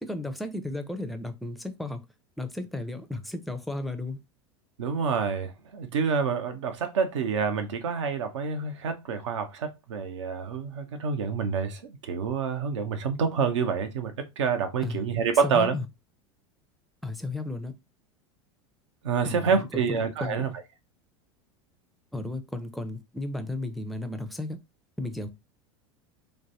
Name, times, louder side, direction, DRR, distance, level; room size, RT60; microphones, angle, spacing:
voice 1, 0.0-2.0 2.4-4.2 14.8-15.0 15.4-15.9 17.0-17.7 19.3-19.6 19.9-20.5 22.1-24.6 25.0-25.3, left 2 dB, ahead, 0.4 m, -34 dB
voice 2, 4.8-15.8 19.0-20.5, right 6 dB, 80° right, 0.6 m, -27 dB
3.2 x 2.1 x 2.6 m
hypercardioid pair, 90°, 15 cm